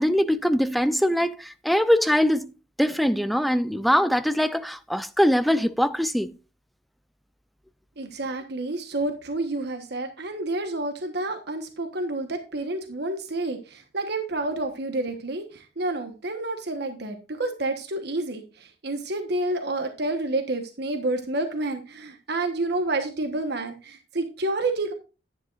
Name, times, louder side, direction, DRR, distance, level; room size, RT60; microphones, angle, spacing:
voice 1, 0.0-2.5 2.8-6.4, equal, ahead, 0.5 m, -22 dB
voice 2, 8.0-24.9, right 2 dB, 65° right, 1.2 m, -29 dB
10.5 x 9.8 x 2.5 m
head